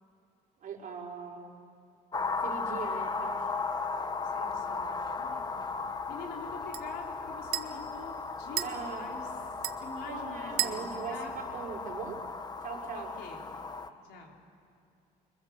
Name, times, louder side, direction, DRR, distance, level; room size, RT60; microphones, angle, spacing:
voice 1, 0.6-1.6 2.3-3.5 8.6-9.1 10.1-11.2 11.5-12.2 12.6-13.1, right 6 dB, 50° right, -2 dB, 5.2 m, -40 dB
sound 1, 2.1-13.9, left 4 dB, 25° left, 1.1 m, -36 dB
voice 2, 4.2-5.6 6.1-11.3 12.9-13.5 14.0-14.4, left 4 dB, 85° left, 0 dB, 4.2 m, -46 dB
sound 2, 4.5-12.3, right 13 dB, 70° right, 1.3 m, -41 dB
25.5 x 24.0 x 7.5 m, 2.5 s
cardioid pair, 110°, 17 cm